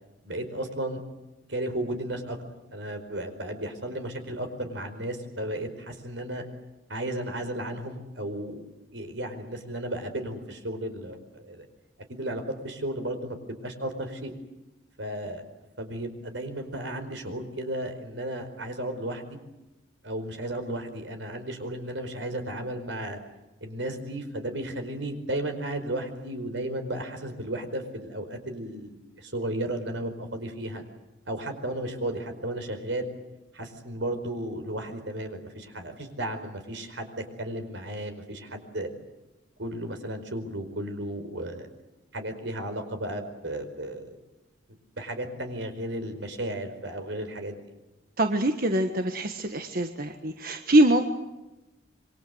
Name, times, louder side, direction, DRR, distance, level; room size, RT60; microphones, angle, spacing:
voice 1, 0.2-1.0 1.5-2.4 2.7-6.4 6.9-8.6 8.9-11.7 12.1-14.3 15.0-15.4 15.8-19.4 20.0-23.2 23.6-30.8 31.2-33.1 33.5-38.9 39.6-41.7 42.1-44.2 44.9-47.6, right 1 dB, 85° right, 7 dB, 4.8 m, -34 dB
voice 2, 48.2-51.1, right 1 dB, 50° right, 6 dB, 1.5 m, -23 dB
27.0 x 23.5 x 7.9 m, 1.0 s
head